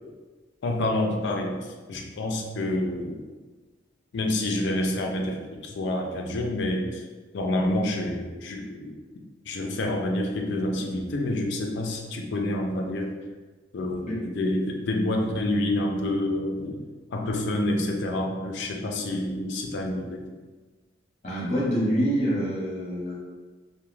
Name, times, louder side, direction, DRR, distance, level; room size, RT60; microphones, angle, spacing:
voice 1, 0.6-3.2 4.1-7.0 7.3-8.9 9.4-13.1 13.7-20.3, left 1 dB, 60° left, 2 dB, 0.4 m, -28 dB
voice 2, 21.2-23.2, equal, 35° left, -6 dB, 0.8 m, -26 dB
2.3 x 2.1 x 3.1 m, 1.3 s
head